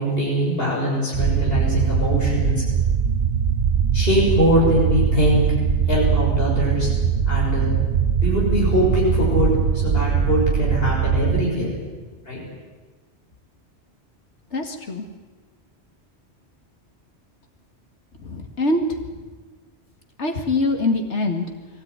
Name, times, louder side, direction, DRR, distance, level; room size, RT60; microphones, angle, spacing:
voice 1, 0.0-2.6 3.9-5.5 5.9-6.9 7.3-7.7 8.2-11.7 12.3-12.4, equal, 60° left, -4 dB, 6.8 m, -22 dB
sound 1, 1.1-11.4, right 7 dB, 70° right, 1.1 m, -21 dB
voice 2, 14.5-15.0 18.2-19.0 20.2-21.4, left 2 dB, 85° left, 3 dB, 2.3 m, -23 dB
23.0 x 17.0 x 9.7 m, 1.3 s
omnidirectional pair, 1.1 m